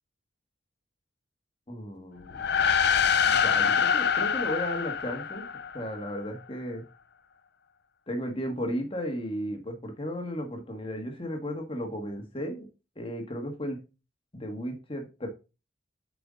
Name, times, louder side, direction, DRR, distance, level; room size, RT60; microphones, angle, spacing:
voice 1, 1.7-2.4 3.2-5.5 5.7-6.8 8.1-12.7 12.9-13.8 14.3-15.3, equal, 25° left, 3 dB, 1.6 m, -34 dB
sound 1, 2.3-6.0, left 7 dB, 55° left, 0.6 m, -25 dB
7.9 x 5.0 x 3.7 m, 0.30 s
head